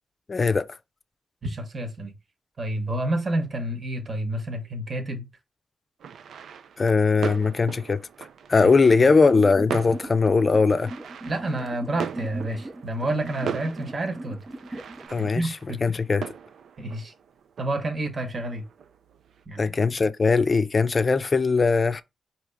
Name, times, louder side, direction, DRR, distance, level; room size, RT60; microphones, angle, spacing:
voice 1, 0.3-0.7 6.8-8.0 8.5-10.9 15.1-15.5 15.8-16.3 19.6-22.0, left 4 dB, 45° left, 0.5 m, -20 dB
voice 2, 1.4-2.1 2.6-5.3 9.0-9.1 11.2-14.4 14.7-14.8 15.2-15.8 16.8-17.1 17.6-18.6 19.5-19.7, right 1 dB, 50° right, 1.1 m, -29 dB
sound 1, 6.0-19.4, right 7 dB, 80° right, 0.3 m, -39 dB
sound 2, 9.3-15.1, right 1 dB, 30° right, 0.6 m, -38 dB
4.6 x 2.9 x 3.5 m
cardioid pair, 55°, 0 cm